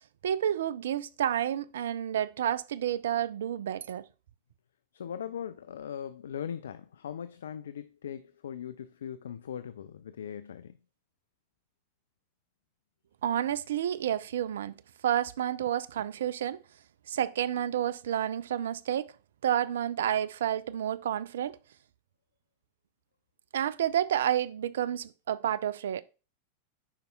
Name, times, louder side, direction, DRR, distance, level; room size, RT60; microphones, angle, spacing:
voice 1, 0.2-4.0 13.2-14.7 15.0-16.6 17.1-19.1 19.4-21.6 23.5-26.0, right 10 dB, 60° right, 0.3 m, -30 dB
voice 2, 4.9-10.8, left 8 dB, 65° left, 0.3 m, -40 dB
9.5 x 5.3 x 2.3 m
figure-of-eight pair, 90°, 0 cm